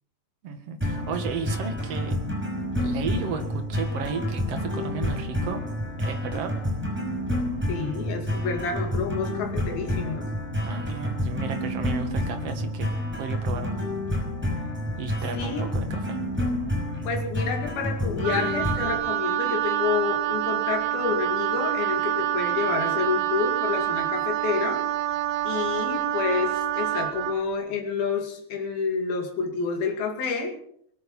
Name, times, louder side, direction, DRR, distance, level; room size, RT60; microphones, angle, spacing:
voice 1, 0.4-2.1 2.8-5.6 6.0-6.5 10.6-12.9 13.2-13.8 15.0-16.2, right 5 dB, 50° right, 5 dB, 2.5 m, -33 dB
sound 1, 0.8-19.0, left 1 dB, 5° right, 5.5 m, -29 dB
voice 2, 7.7-10.3 15.3-15.6 17.0-24.8 25.4-30.6, left 5 dB, 80° left, 2 dB, 4.3 m, -29 dB
Wind instrument woodwind instrument, 18.2-27.4, right 12 dB, 85° right, 3.2 m, -27 dB
22.0 x 11.5 x 5.5 m, 0.68 s
omnidirectional pair, 4.3 m